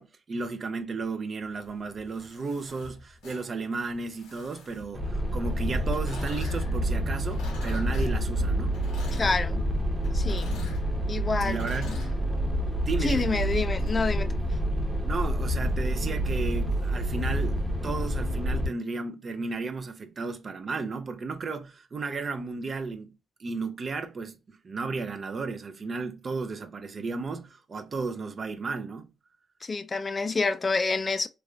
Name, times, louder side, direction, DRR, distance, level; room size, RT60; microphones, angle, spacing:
voice 1, 0.0-8.7 11.4-12.0 12.8-13.3 15.1-23.1 23.4-29.1, right 4 dB, 40° right, 0.4 m, -34 dB
sound 1, 1.6-5.2 5.8-18.1, left 2 dB, 90° left, 1.1 m, -44 dB
sound 2, 4.9-18.7, equal, 10° right, 0.8 m, -28 dB
voice 2, 9.1-9.6 10.1-10.6 11.1-11.6 13.0-14.4 29.6-31.3, left 4 dB, 30° left, 0.3 m, -28 dB
3.1 x 2.4 x 2.3 m
cardioid pair, 90°, 0 cm